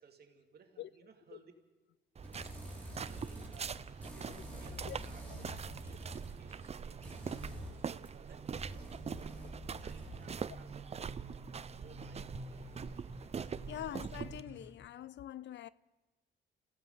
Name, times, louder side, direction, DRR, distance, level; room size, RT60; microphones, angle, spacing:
voice 1, 0.0-1.5 2.9-7.1 7.6-9.4 9.8-11.3 11.8-12.9 13.6-13.9, right 6 dB, 55° right, 2.8 m, -61 dB
sound 1, 2.2-3.7 4.0-6.4 7.0-10.6, equal, 10° left, 5.3 m, -48 dB
sound 2, 2.2-14.7, right 2 dB, 15° right, 6.3 m, -52 dB
sound 3, 2.2-14.4, right 6 dB, 35° right, 0.6 m, -43 dB
voice 2, 13.4-15.7, left 12 dB, 65° left, 0.6 m, -45 dB
28.0 x 16.5 x 5.7 m
cardioid pair, 90°, 20 cm